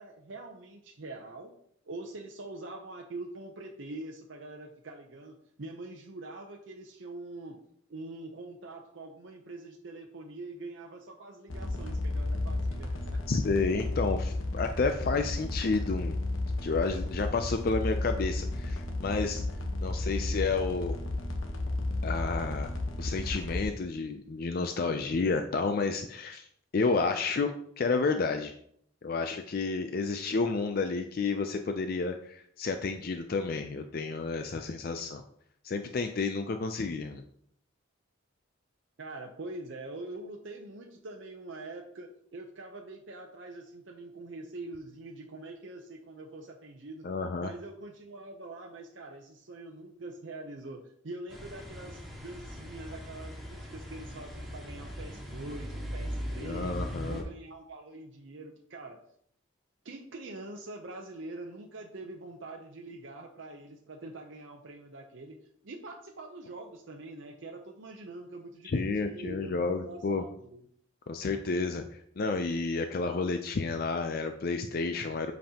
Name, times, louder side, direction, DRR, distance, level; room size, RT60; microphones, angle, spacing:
voice 1, 0.0-1.6 1.8-7.6 7.9-13.2 39.0-47.1 47.4-56.8 57.1-59.0 59.8-70.7, right 2 dB, 65° right, 1 dB, 0.7 m, -44 dB
sound 1, 11.5-23.7, left 2 dB, 85° left, 1.1 m, -33 dB
voice 2, 13.3-16.2 16.6-19.4 19.8-21.0 22.0-26.5 26.7-28.5 29.0-35.2 35.6-37.2 47.0-47.5 56.4-57.2 68.6-70.2 71.1-71.8 72.2-75.3, left 4 dB, 50° left, 7 dB, 0.4 m, -30 dB
sound 2, 51.3-57.2, equal, ahead, 1.7 m, -39 dB
7.7 x 5.3 x 2.9 m, 0.67 s
head